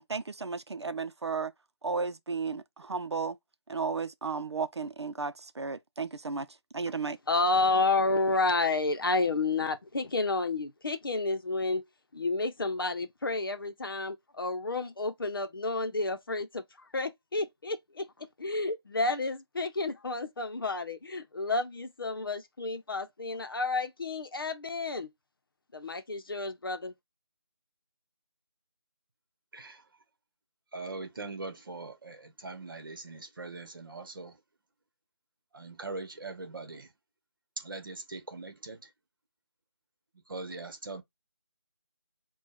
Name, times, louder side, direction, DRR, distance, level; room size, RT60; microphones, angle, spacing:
voice 1, 0.0-1.5 1.8-3.4 3.7-6.5 6.7-7.2, right 4 dB, 75° right, 0.7 m, -34 dB
voice 2, 7.3-11.8 12.1-25.1 25.7-26.9, left 3 dB, 55° left, 0.7 m, -30 dB
voice 3, 30.7-34.4 35.5-36.9 37.6-38.9 40.3-41.0, right 3 dB, 50° right, 1.2 m, -41 dB
6.1 x 2.3 x 2.4 m
figure-of-eight pair, 170°, 14 cm